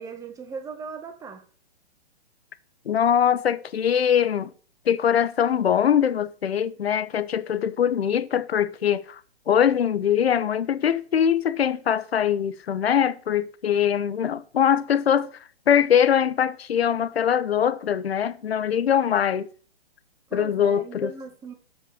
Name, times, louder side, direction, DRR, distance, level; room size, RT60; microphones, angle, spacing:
voice 1, 0.0-1.4 20.3-21.5, right 5 dB, 10° right, 1.6 m, -38 dB
voice 2, 2.9-4.5 4.9-9.2 9.5-15.3 15.7-19.5 20.3-21.1, left 9 dB, 75° left, 1.0 m, -22 dB
13.0 x 5.7 x 6.6 m
hypercardioid pair, 140°, 32 cm